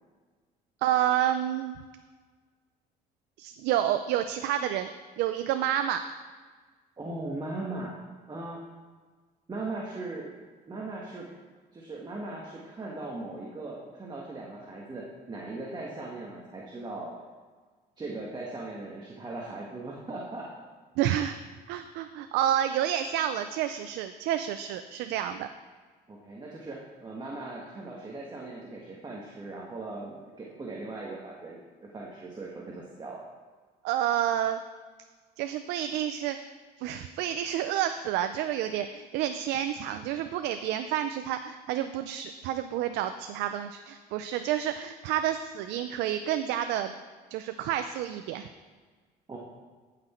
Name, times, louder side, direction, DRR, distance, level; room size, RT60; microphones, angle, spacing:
voice 1, 0.8-1.7 3.4-4.9 5.2-6.0 21.0-21.4 21.7-25.5 33.8-34.6 35.4-36.4 36.8-46.9 47.3-48.5, right 11 dB, 90° right, 9 dB, 0.5 m, -29 dB
voice 2, 7.0-7.9 8.3-8.6 9.5-10.3 10.7-11.3 11.7-17.1 18.0-20.5 26.1-33.3 49.3-49.4, right 2 dB, 25° right, -3 dB, 1.5 m, -39 dB
15.0 x 6.0 x 4.4 m, 1.5 s
cardioid pair, 110°, 17 cm